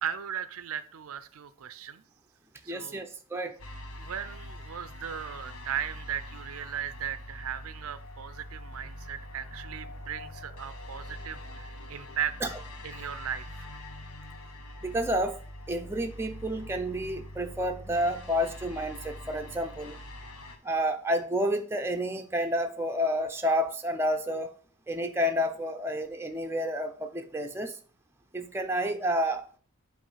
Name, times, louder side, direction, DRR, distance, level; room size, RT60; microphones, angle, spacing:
voice 1, 0.0-2.0 2.6-3.1 4.0-12.4 12.8-13.7, right 9 dB, 70° right, 14 dB, 0.5 m, -37 dB
voice 2, 2.7-3.6 12.4-12.5 14.8-15.4 15.7-20.0 20.6-24.5 24.9-27.8 28.3-29.5, equal, 10° right, 4 dB, 0.6 m, -30 dB
sound 1, 3.6-20.6, left 1 dB, 70° left, 1.2 m, -44 dB
8.3 x 3.2 x 5.5 m, 0.43 s
head